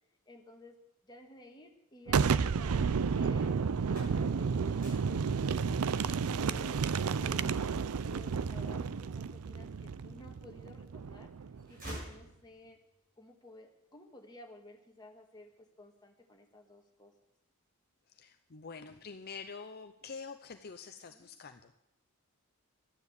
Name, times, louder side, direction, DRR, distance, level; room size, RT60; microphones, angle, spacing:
voice 1, 0.3-0.8 1.0-5.9 6.4-11.3 11.7-12.8 13.2-17.1 21.1-21.3, left 2 dB, 20° left, 1 dB, 1.9 m, -54 dB
Boom, 2.1-11.7, right 5 dB, 75° right, 0.5 m, -31 dB
sound 1, 3.8-9.6 10.1-10.9 11.2-12.8, right 1 dB, 40° right, 7.6 m, -50 dB
voice 2, 18.1-21.7, left 5 dB, 45° left, 8 dB, 0.6 m, -46 dB
13.0 x 10.0 x 8.2 m, 0.88 s
head